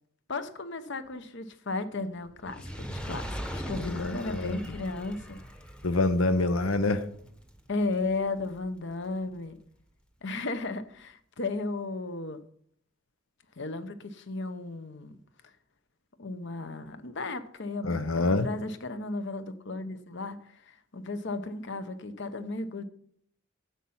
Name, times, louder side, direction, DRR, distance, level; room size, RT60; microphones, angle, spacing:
voice 1, 0.3-5.4 7.7-9.6 10.2-12.4 13.6-15.2 15.4-15.5 16.2-22.8, left 3 dB, 60° left, 0.9 m, -35 dB
Fire, 2.3-8.8 9.5-9.6, equal, 5° left, 0.9 m, -41 dB
voice 2, 3.8-4.6 5.8-7.0 17.8-18.5, left 2 dB, 90° left, 0.9 m, -26 dB
10.0 x 7.7 x 5.6 m
head